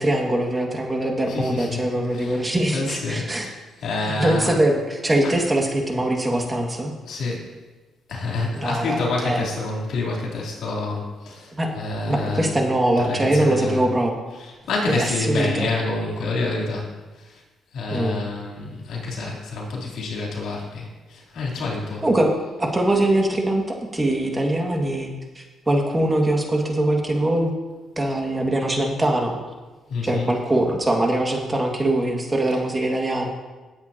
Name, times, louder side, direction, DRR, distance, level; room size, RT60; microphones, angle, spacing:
voice 1, 0.0-3.5 4.0-6.9 8.5-9.4 11.5-11.7 12.1-14.1 14.9-15.7 17.9-18.2 22.0-22.3 22.6-23.6 23.9-25.1 25.4-27.5 28.0-29.4 30.0-33.3, right 1 dB, 20° right, 1 dB, 1.9 m, -22 dB
voice 2, 1.3-1.8 2.1-2.4 2.7-3.3 3.8-4.5 7.1-7.5 8.1-12.5 13.0-13.8 14.7-16.9 17.2-17.4 17.7-22.0 29.9-30.3, left 3 dB, 75° left, -2 dB, 3.2 m, -27 dB
18.5 x 8.0 x 2.9 m, 1.2 s
cardioid pair, 90°, 0 cm